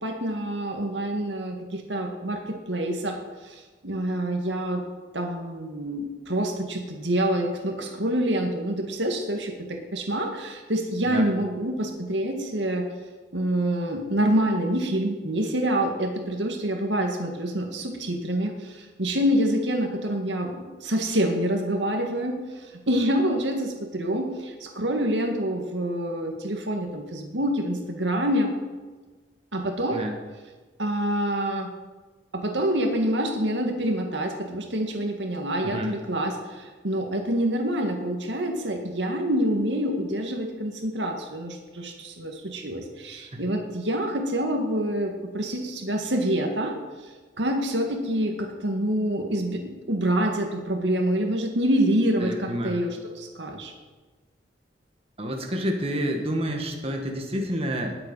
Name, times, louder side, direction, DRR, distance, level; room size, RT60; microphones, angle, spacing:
voice 1, 0.0-3.2 3.4-4.8 5.1-12.9 13.3-20.5 20.8-22.4 22.9-28.5 29.5-30.0 30.8-31.7 32.3-46.8 47.4-53.7, right 1 dB, 80° right, 3 dB, 2.1 m, -26 dB
voice 2, 52.2-52.8 55.2-58.0, equal, 35° right, 1 dB, 1.9 m, -29 dB
20.0 x 8.0 x 5.7 m, 1.3 s
head